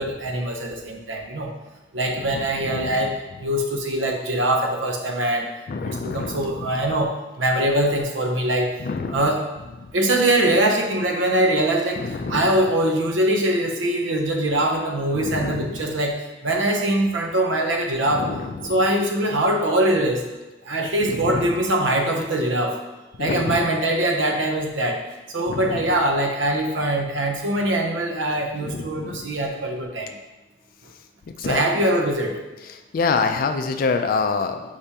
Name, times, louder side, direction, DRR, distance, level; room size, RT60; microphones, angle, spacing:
voice 1, 0.0-1.5 1.9-5.5 5.8-8.7 9.1-9.4 9.9-18.3 18.7-20.3 20.6-22.8 23.2-25.0 25.3-30.1 31.4-32.4, right 1 dB, 80° right, 2 dB, 0.6 m, -22 dB
voice 2, 2.3-3.0 5.7-6.5 8.8-9.3 12.0-12.5 15.1-15.8 18.1-18.7 21.1-21.5 23.2-23.6 25.5-25.8 28.6-29.3 31.4-31.6 32.9-34.8, left 4 dB, 50° left, 7 dB, 0.3 m, -26 dB
4.8 x 2.8 x 3.4 m, 1.1 s
head